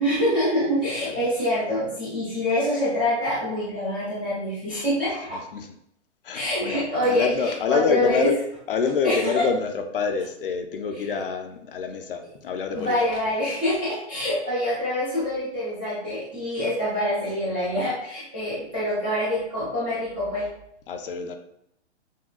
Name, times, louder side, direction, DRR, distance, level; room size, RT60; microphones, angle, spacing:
voice 1, 0.0-5.4 6.3-8.3 9.0-9.4 10.9-11.0 12.7-20.5, left 1 dB, 10° right, -12 dB, 0.4 m, -25 dB
voice 2, 5.3-5.7 6.2-8.4 8.7-13.0 20.9-21.4, left 5 dB, 50° left, 6 dB, 0.5 m, -26 dB
6.1 x 2.2 x 2.3 m, 0.75 s
hypercardioid pair, 155°, 35 cm